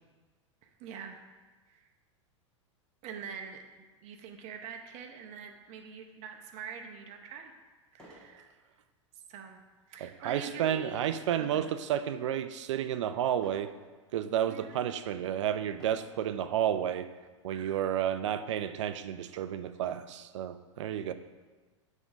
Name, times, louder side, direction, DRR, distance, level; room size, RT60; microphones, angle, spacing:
voice 1, 0.6-1.2 1.7-1.9 3.0-3.6 4.0-7.5 7.9-8.5 9.3-9.6 9.9-11.0 11.4-11.7 14.5-15.0 17.5-17.8, right 6 dB, 45° right, 4 dB, 0.9 m, -45 dB
sound 1, 7.9-8.4 8.8-9.1 11.0-11.4 12.0-12.4 13.4-13.8 14.5-14.6 15.7-16.2 17.2-17.4 17.7-17.8 18.2-19.3, equal, 5° left, 1.8 m, -55 dB
voice 2, 10.0-13.7 14.1-17.1 17.4-21.1, right 10 dB, 70° right, 11 dB, 0.5 m, -31 dB
7.1 x 3.6 x 5.4 m, 1.3 s
hypercardioid pair, 90°, 16 cm